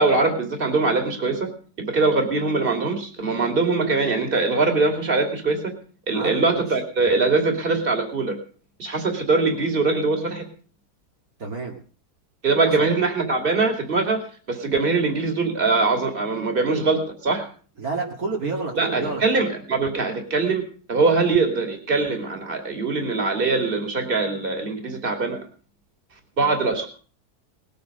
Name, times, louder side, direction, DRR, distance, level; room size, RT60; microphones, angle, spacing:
voice 1, 0.0-1.5 1.8-5.7 6.1-8.4 8.8-10.4 12.4-17.5 18.8-20.6 20.9-25.4 26.4-26.9, right 3 dB, 35° right, 4 dB, 2.8 m, -22 dB
voice 2, 6.1-6.7 11.4-11.8 12.6-12.9 17.8-19.2, right 3 dB, 60° right, 0 dB, 2.7 m, -29 dB
19.5 x 8.6 x 6.6 m, 0.42 s
omnidirectional pair, 1.7 m